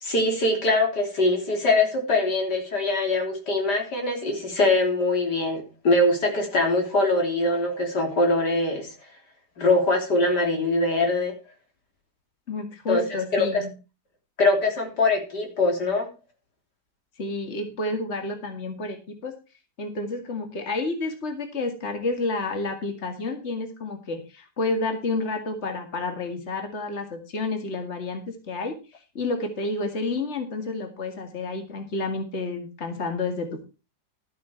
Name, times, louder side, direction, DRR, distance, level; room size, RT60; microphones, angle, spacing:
voice 1, 0.0-8.9 9.6-11.4 12.9-13.6 14.4-16.1, left 2 dB, 80° left, 2 dB, 3.9 m, -23 dB
voice 2, 12.5-13.7 17.2-19.3 19.8-28.7 29.1-33.6, left 3 dB, 40° left, 5 dB, 2.3 m, -30 dB
13.0 x 8.5 x 4.5 m, 0.32 s
omnidirectional pair, 1.8 m